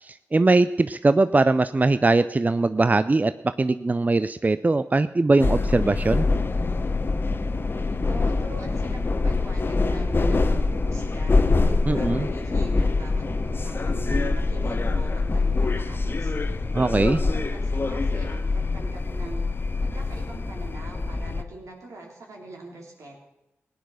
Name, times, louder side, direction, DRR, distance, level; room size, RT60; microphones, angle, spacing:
voice 1, 0.0-3.3 3.6-6.3 11.9-12.3 16.7-17.2, right 3 dB, 30° right, 13 dB, 0.5 m, -21 dB
sound 1, 5.4-21.4, left 3 dB, 45° left, 1.0 m, -24 dB
voice 2, 7.7-16.4 17.0-19.5 19.8-23.2, right 2 dB, 75° right, 0 dB, 3.6 m, -42 dB
17.5 x 9.5 x 6.4 m, 0.90 s
cardioid pair, 45°, 5 cm